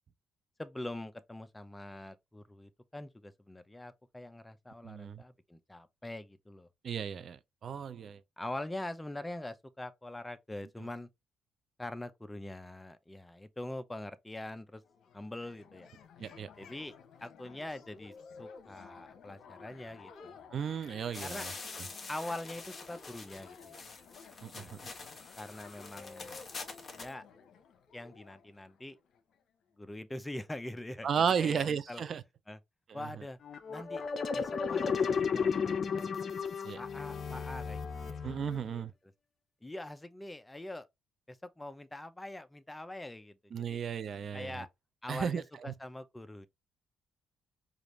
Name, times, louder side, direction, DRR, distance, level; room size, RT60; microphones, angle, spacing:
voice 1, 0.6-6.7 7.7-7.8 8.4-11.1 11.8-14.8 15.1-15.9 16.6-16.9 17.2-18.1 18.4-20.4 21.2-21.5 22.1-23.8 24.5-24.7 25.4-26.3 26.9-27.2 27.9-29.0 29.8-32.0 32.5-32.6 32.9-33.4 33.7-34.0 34.3-36.2 36.8-38.2 39.6-40.9 41.3-43.8 44.3-44.7 45.0-46.5, left 1 dB, 10° left, 0.6 m, -43 dB
voice 2, 4.8-5.2 6.8-8.2 16.2-16.5 20.5-21.5 24.4-24.6 31.0-32.2 32.9-33.1 36.6-36.8 38.2-38.9 43.5-44.6 45.1-45.4, right 7 dB, 55° right, 0.4 m, -34 dB
sound 1, 14.8-29.4, left 5 dB, 70° left, 0.9 m, -54 dB
sound 2, 21.1-27.1, left 3 dB, 35° left, 1.2 m, -46 dB
sound 3, 33.4-38.8, left 6 dB, 50° left, 0.7 m, -33 dB
5.0 x 2.5 x 3.1 m
cardioid pair, 90°, 0 cm